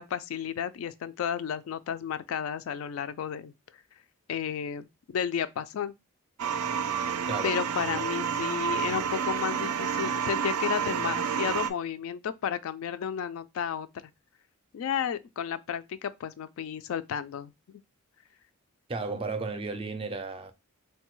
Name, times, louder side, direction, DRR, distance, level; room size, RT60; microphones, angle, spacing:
voice 1, 0.0-3.5 4.3-5.9 7.4-13.9 14.7-17.5, left 8 dB, 70° left, 0.3 m, -32 dB
sound 1, 6.4-11.7, right 7 dB, 85° right, 0.4 m, -29 dB
voice 2, 18.9-20.5, right 3 dB, 25° right, 0.4 m, -34 dB
3.9 x 2.2 x 3.0 m
head